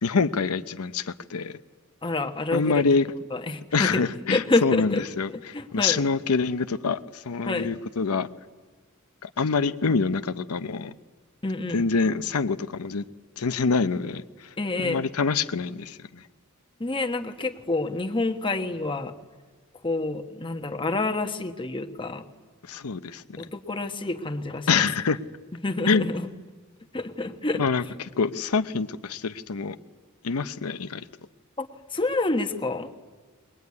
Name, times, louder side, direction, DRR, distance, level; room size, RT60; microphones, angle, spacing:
voice 1, 0.0-1.5 2.5-3.1 3.7-8.3 9.2-10.9 11.7-13.0 13.4-14.5 14.8-16.2 22.7-23.4 24.7-25.2 25.9-26.1 27.6-29.8 30.2-31.0, left 4 dB, 85° left, 11 dB, 0.7 m, -26 dB
voice 2, 2.0-2.9 3.3-5.0 5.3-6.0 7.5-7.7 11.4-11.8 14.6-15.0 16.8-19.1 19.8-22.2 23.4-24.9 25.6-26.3 26.9-27.9 31.6-32.9, left 2 dB, 25° left, 6 dB, 1.2 m, -28 dB
22.5 x 21.0 x 9.6 m, 1.4 s
head